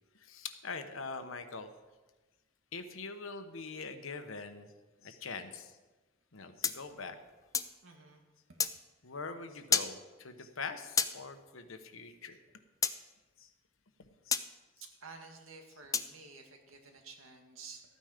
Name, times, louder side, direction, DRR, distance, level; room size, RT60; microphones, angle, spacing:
voice 1, 0.2-1.7 2.7-4.7 5.0-5.8 6.3-7.2 9.0-12.4 12.8-12.9 13.4-13.5 14.3-14.4, left 4 dB, 80° left, 8 dB, 1.1 m, -43 dB
sound 1, 6.6-7.8 8.6-8.7 9.7-9.9 11.0-11.1 12.8-13.0 14.3-14.5 15.9-16.1, left 6 dB, 15° left, 0.4 m, -30 dB
voice 2, 7.8-8.2 8.5-8.6 14.8-17.8, right 4 dB, 90° right, 3 dB, 1.9 m, -52 dB
13.5 x 9.4 x 5.1 m, 1.2 s
head